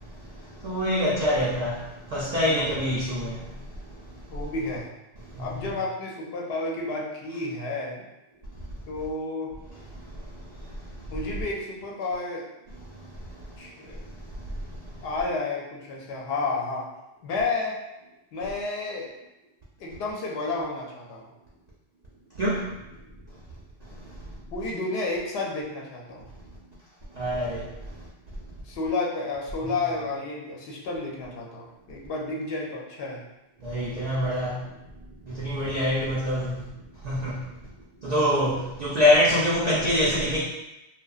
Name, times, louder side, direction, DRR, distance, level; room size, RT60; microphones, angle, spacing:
voice 1, 0.6-1.7 2.1-3.3 22.4-22.6 27.2-27.6 33.6-34.5 35.4-36.4 37.0-37.3 38.0-40.4, left 1 dB, 65° right, -7 dB, 0.4 m, -24 dB
voice 2, 2.3-2.7 4.3-4.9 5.4-8.0 8.9-9.5 11.1-12.4 13.6-14.1 15.0-16.9 17.2-17.8 18.3-19.1 19.8-21.3 24.5-26.3 28.6-33.2, left 3 dB, 65° left, -2 dB, 0.7 m, -31 dB
2.8 x 2.2 x 2.3 m, 0.96 s
omnidirectional pair, 1.3 m